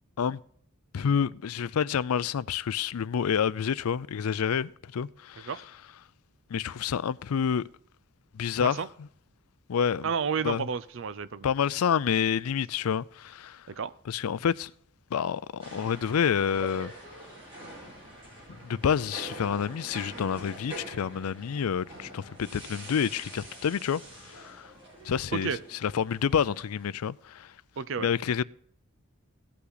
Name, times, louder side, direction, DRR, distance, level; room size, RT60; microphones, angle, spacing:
voice 1, 0.9-5.5 6.5-7.7 8.3-8.8 9.7-10.1 10.4-10.6 11.4-13.6 14.1-14.7 15.1-16.9 18.6-24.7 25.0-27.5 28.0-28.4, left 7 dB, 90° left, 0.4 m, -28 dB
voice 2, 10.0-11.5 13.7-13.9 25.3-25.6 27.8-28.1, right 6 dB, 60° right, 0.5 m, -31 dB
sound 1, 15.6-26.9, right 1 dB, 25° right, 4.3 m, -45 dB
17.0 x 5.7 x 3.9 m
head